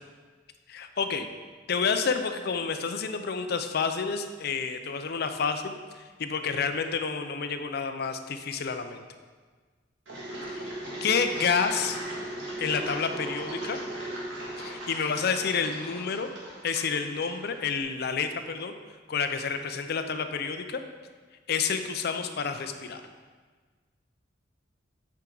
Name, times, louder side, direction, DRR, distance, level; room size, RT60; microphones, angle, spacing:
voice 1, 0.7-1.3 1.7-9.0 10.5-10.7 11.0-12.0 12.6-13.8 14.6-16.3 16.6-18.7 19.1-20.8 21.5-23.0, left 5 dB, 60° left, 7 dB, 0.5 m, -29 dB
Engine, 10.1-17.8, right 1 dB, 85° right, 1.9 m, -37 dB
8.6 x 4.7 x 3.9 m, 1.5 s
head